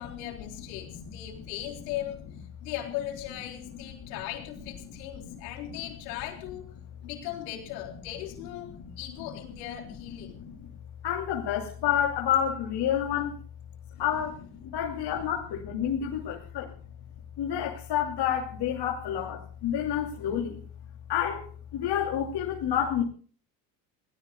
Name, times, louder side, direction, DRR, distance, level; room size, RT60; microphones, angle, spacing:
voice 1, 0.0-2.2 2.6-6.7 7.0-10.4 13.9-14.0, left 12 dB, 75° left, 2 dB, 4.2 m, -38 dB
voice 2, 0.9-1.5 3.7-4.2 4.8-5.8 8.7-9.4 9.8-9.9 10.2-10.7 11.0-13.3 14.0-16.7 17.4-20.6 21.1-21.5 21.7-23.0, left 9 dB, 50° left, 1 dB, 2.9 m, -30 dB
29.0 x 18.0 x 2.3 m, 0.40 s
hypercardioid pair, 70°, 49 cm